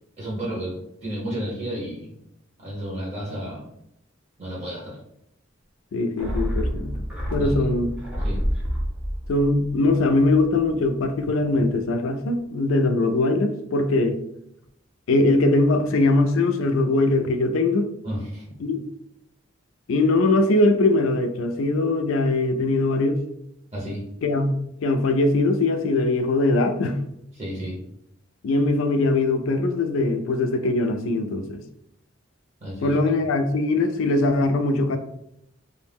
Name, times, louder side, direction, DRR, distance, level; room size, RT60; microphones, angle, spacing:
voice 1, 0.2-2.1 2.6-3.7 4.4-5.0 7.4-7.7 8.2-8.4 18.0-18.4 23.7-24.1 27.4-27.8 32.6-33.0, equal, 35° right, -4 dB, 0.9 m, -32 dB
voice 2, 5.9-7.9 9.3-14.2 15.1-17.9 18.6-18.8 19.9-23.2 24.2-27.0 28.4-31.6 32.8-35.0, left 2 dB, 80° left, 7 dB, 0.4 m, -21 dB
sound 1, 6.2-10.8 11.1-11.2, equal, 5° right, 0.5 m, -28 dB
2.5 x 2.1 x 3.4 m, 0.78 s
head